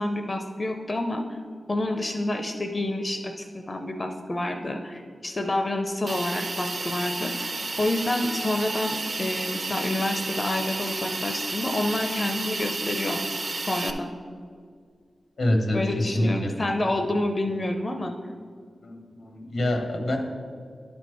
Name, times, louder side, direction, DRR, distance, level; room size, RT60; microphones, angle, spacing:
voice 1, 0.0-1.4 1.7-13.2 13.5-14.1 15.7-18.1, left 1 dB, 35° left, 5 dB, 0.5 m, -28 dB
Hiss, 6.1-13.9, right 3 dB, 60° right, 0.6 m, -32 dB
voice 2, 15.4-16.5 18.8-20.2, left 1 dB, 80° left, 3 dB, 1.2 m, -26 dB
10.5 x 4.3 x 4.7 m, 2.1 s
cardioid pair, 60°, 0 cm